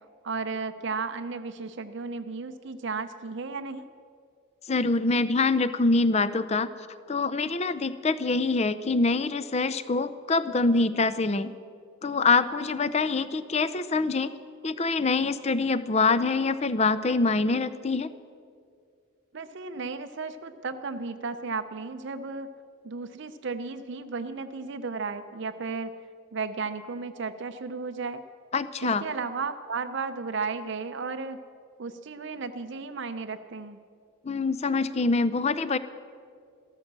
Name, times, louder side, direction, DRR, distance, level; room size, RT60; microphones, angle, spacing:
voice 1, 0.2-3.9 19.3-22.5 22.8-25.9 26.3-28.2 28.8-31.4 31.8-33.8, right 4 dB, 55° right, 8 dB, 0.5 m, -34 dB
voice 2, 4.7-6.7 7.1-11.5 12.0-14.3 14.6-18.1 28.5-29.0 34.2-35.8, left 3 dB, 30° left, 14 dB, 0.5 m, -25 dB
14.0 x 13.5 x 7.3 m, 2.2 s
head